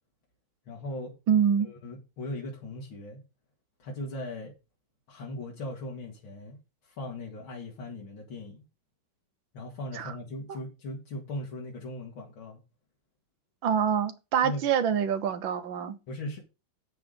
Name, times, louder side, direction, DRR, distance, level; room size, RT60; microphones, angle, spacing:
voice 1, 0.7-1.1 1.6-3.2 3.8-4.5 5.1-8.6 9.5-12.6 14.4-14.6 16.1-16.4, left 1 dB, 90° left, 2.8 m, -39 dB
voice 2, 1.3-1.7 10.0-10.1 13.6-16.0, right 8 dB, 75° right, 1.7 m, -25 dB
8.5 x 8.5 x 3.9 m
omnidirectional pair, 2.2 m